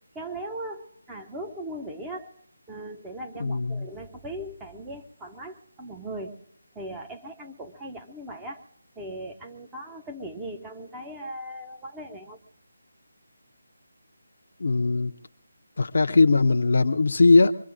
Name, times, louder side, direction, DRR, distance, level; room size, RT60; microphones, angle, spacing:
voice 1, 0.1-2.3 2.7-6.4 6.7-8.6 9.0-12.4, right 1 dB, 10° right, 2 dB, 0.6 m, -38 dB
voice 2, 3.4-3.8 14.6-15.1 15.8-17.5, left 3 dB, 60° left, 6 dB, 0.5 m, -20 dB
25.0 x 22.0 x 2.5 m, 0.71 s
figure-of-eight pair, 160°, 0 cm